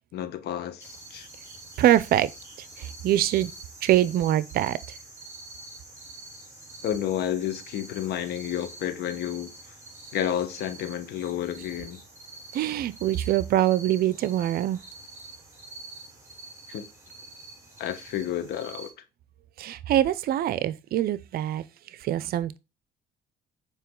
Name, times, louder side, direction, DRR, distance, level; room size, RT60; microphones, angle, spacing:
voice 1, 0.1-1.3 6.8-9.5 10.1-12.0 16.7-16.9 17.8-18.9, left 10 dB, 70° left, 1.4 m, -30 dB
sound 1, 0.8-18.9, right 2 dB, 15° right, 4.4 m, -46 dB
voice 2, 1.8-2.3 2.8-3.5 3.8-4.8 12.5-14.8 19.6-21.6 22.0-22.6, right 12 dB, 65° right, 0.6 m, -24 dB
8.2 x 4.9 x 3.8 m
cardioid pair, 110°, 17 cm